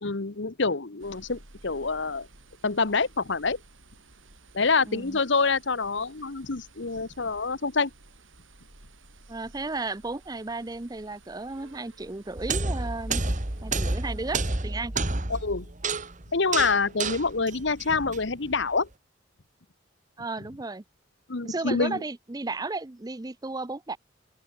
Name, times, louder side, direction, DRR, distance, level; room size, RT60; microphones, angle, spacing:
voice 1, 0.0-2.3 2.6-3.6 4.5-7.9 15.3-15.7 16.3-18.9 21.3-22.0, left 4 dB, 60° left, 1.1 m, -26 dB
sound 1, 1.0-14.5, right 2 dB, 75° right, 5.5 m, -54 dB
voice 2, 4.9-5.2 9.3-13.2 13.6-14.9 20.2-20.8 21.4-24.0, right 3 dB, 20° right, 0.5 m, -34 dB
sound 2, 12.4-18.6, right 3 dB, 40° right, 1.9 m, -30 dB
open air
head